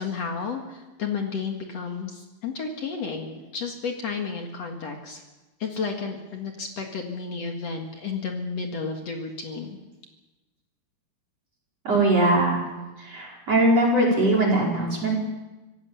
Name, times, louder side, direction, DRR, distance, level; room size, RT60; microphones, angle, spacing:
voice 1, 0.0-5.2 5.6-9.8, left 5 dB, 65° left, 3 dB, 1.6 m, -32 dB
voice 2, 11.8-12.6 13.0-15.1, right 1 dB, 30° right, 0 dB, 5.4 m, -21 dB
25.0 x 17.5 x 7.2 m, 1.1 s
omnidirectional pair, 5.8 m